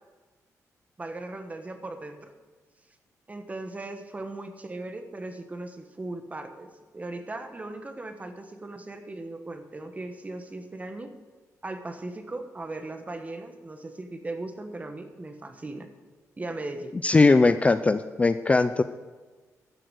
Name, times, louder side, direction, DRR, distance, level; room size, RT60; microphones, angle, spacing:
voice 1, 1.0-2.3 3.3-11.1 11.6-15.9 16.4-17.0, right 2 dB, 25° right, 7 dB, 1.2 m, -38 dB
voice 2, 17.0-18.8, left 3 dB, 20° left, 11 dB, 0.4 m, -20 dB
13.0 x 7.8 x 6.4 m, 1.3 s
cardioid pair, 110°, 6 cm